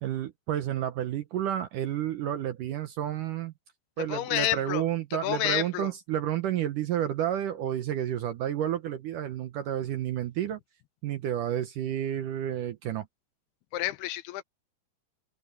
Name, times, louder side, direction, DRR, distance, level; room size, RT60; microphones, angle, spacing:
voice 1, 0.0-3.5 4.0-10.6 11.0-13.1, right 11 dB, 70° right, 2.1 m, -30 dB
voice 2, 4.1-4.8 5.2-5.9 13.7-14.4, left 15 dB, 80° left, 2.7 m, -29 dB
omnidirectional pair, 4.7 m